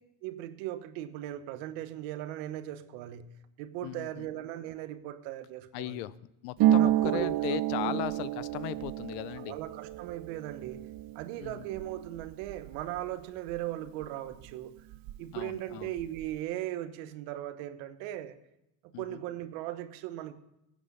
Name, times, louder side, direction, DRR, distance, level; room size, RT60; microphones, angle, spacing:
voice 1, 0.2-3.3 3.6-6.1 6.8-7.4 7.8-8.2 9.4-10.9 11.1-14.7 15.2-18.3 18.8-20.3, right 13 dB, 80° right, 11 dB, 1.1 m, -38 dB
voice 2, 3.8-4.3 5.7-6.1 6.4-9.6 11.4-11.7 15.3-16.0 18.9-19.2, left 17 dB, 75° left, 19 dB, 0.7 m, -37 dB
Harp, 6.6-14.1 14.3-15.4 15.7-16.3, right 12 dB, 50° right, 0.7 m, -31 dB
15.5 x 8.6 x 5.5 m, 0.89 s
supercardioid pair, 95°, 44 cm